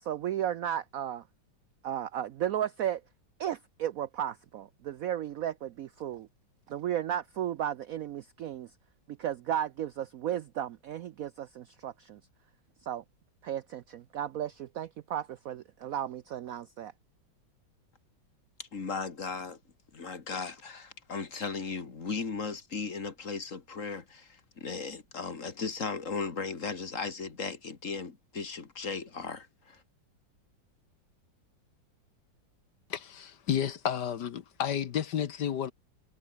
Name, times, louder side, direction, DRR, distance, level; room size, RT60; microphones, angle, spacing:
voice 1, 0.0-1.2 1.8-3.0 3.4-6.3 6.7-8.7 9.2-12.2 12.8-13.0 13.4-16.9, right 10 dB, 70° right, 0.8 m, -34 dB
voice 2, 18.6-19.6 19.9-29.8, left 4 dB, 40° left, 2.4 m, -37 dB
voice 3, 32.9-35.7, left 9 dB, 65° left, 1.6 m, -31 dB
omnidirectional pair, 2.0 m